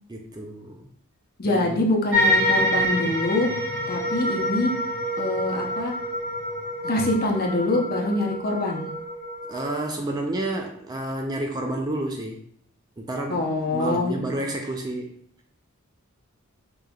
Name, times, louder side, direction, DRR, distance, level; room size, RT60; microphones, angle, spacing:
voice 1, 0.1-0.9 1.4-1.8 9.5-12.4 13.0-15.1, right 1 dB, 20° right, 2 dB, 0.3 m, -30 dB
voice 2, 1.4-3.5 3.9-4.7 5.2-5.9 6.8-8.9 13.3-14.2, left 2 dB, 45° left, 0 dB, 0.7 m, -24 dB
sound 1, 2.1-9.7, equal, 60° right, 1.3 m, -27 dB
4.9 x 3.0 x 2.3 m, 0.64 s
head